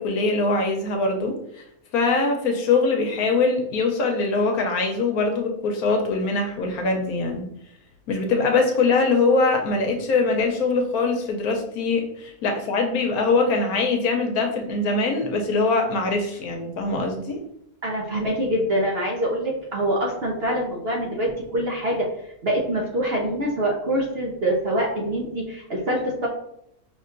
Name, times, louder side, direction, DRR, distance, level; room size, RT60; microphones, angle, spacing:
voice 1, 0.0-1.6 1.9-7.5 8.1-17.4, left 3 dB, 75° left, 3 dB, 1.1 m, -22 dB
voice 2, 17.8-22.1 22.4-26.3, right 1 dB, 55° right, -2 dB, 0.7 m, -25 dB
5.4 x 3.1 x 2.5 m, 0.76 s
omnidirectional pair, 1.6 m